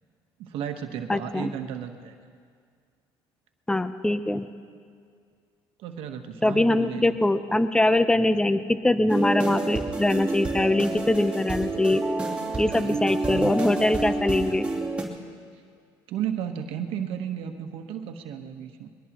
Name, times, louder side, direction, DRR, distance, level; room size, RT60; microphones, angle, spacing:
voice 1, 0.4-2.1 5.8-7.2 12.8-13.6 16.1-18.9, right 9 dB, 75° right, 6 dB, 1.3 m, -34 dB
voice 2, 1.1-1.5 3.7-4.5 6.4-12.0 12.6-14.7, left 1 dB, 10° left, 11 dB, 0.7 m, -23 dB
sound 1, 9.1-15.0, right 2 dB, 10° right, 3.0 m, -29 dB
21.5 x 21.5 x 3.0 m, 2.1 s
cardioid pair, 100°, 10 cm